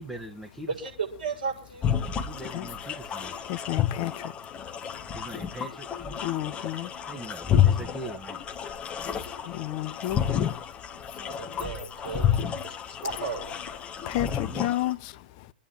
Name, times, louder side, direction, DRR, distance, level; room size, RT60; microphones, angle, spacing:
voice 1, 0.0-0.8 2.3-3.5 5.1-6.1 7.1-8.6 9.3-9.4 10.9-11.1 14.2-14.7, right 1 dB, 5° right, 1.6 m, -42 dB
voice 2, 0.7-2.0 11.2-12.7 13.0-13.6, right 5 dB, 75° right, 7.8 m, -35 dB
sound 1, 1.8-14.9, left 9 dB, 25° left, 1.3 m, -30 dB
voice 3, 3.5-4.1 6.2-6.9 9.5-10.2 14.1-15.1, left 15 dB, 40° left, 1.0 m, -30 dB
27.0 x 10.0 x 4.0 m
figure-of-eight pair, 100°, 5 cm